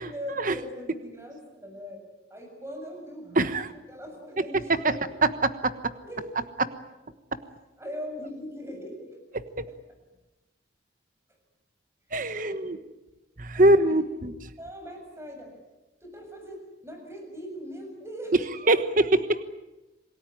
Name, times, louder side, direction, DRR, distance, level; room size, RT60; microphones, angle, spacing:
voice 1, 0.0-2.0 2.3-5.2 6.0-6.3 7.8-9.8 12.1-12.7 13.5-14.0 14.6-15.5 16.0-18.5, equal, 15° right, 3 dB, 7.1 m, -40 dB
voice 2, 3.4-3.7 5.6-5.7 12.1-12.8 13.4-14.3 18.7-19.4, right 1 dB, 45° right, 11 dB, 1.3 m, -22 dB
27.5 x 18.5 x 9.9 m, 1.0 s
head